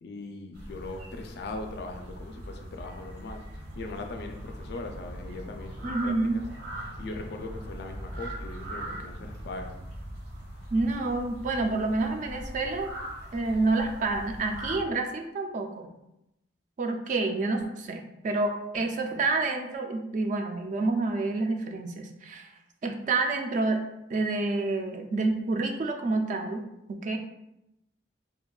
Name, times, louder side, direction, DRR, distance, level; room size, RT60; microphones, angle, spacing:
voice 1, 0.0-3.4 3.8-6.1 7.0-9.7, left 2 dB, 65° left, 4 dB, 0.3 m, -39 dB
sound 1, 0.5-14.8, right 1 dB, 85° right, 0.9 m, -41 dB
voice 2, 5.8-6.4 10.7-12.9 13.3-15.9 16.8-22.5 22.8-23.8 24.1-26.6 26.9-27.2, right 3 dB, 45° right, 5 dB, 0.3 m, -28 dB
3.3 x 2.1 x 2.3 m, 0.87 s
head